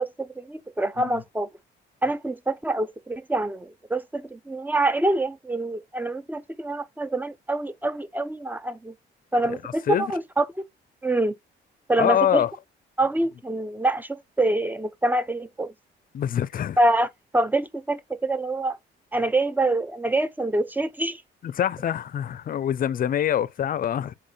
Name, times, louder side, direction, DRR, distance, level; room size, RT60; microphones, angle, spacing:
voice 1, 0.0-1.5 2.0-8.9 9.3-10.6 11.0-11.3 11.9-12.4 13.0-15.7 16.8-17.1 17.3-18.8 19.1-21.2, right 2 dB, 10° right, 0.5 m, -25 dB
voice 2, 9.4-10.1 12.0-12.5 16.1-16.8 21.4-24.2, left 10 dB, 45° left, 0.5 m, -25 dB
4.3 x 3.7 x 3.1 m
cardioid pair, 90°, 20 cm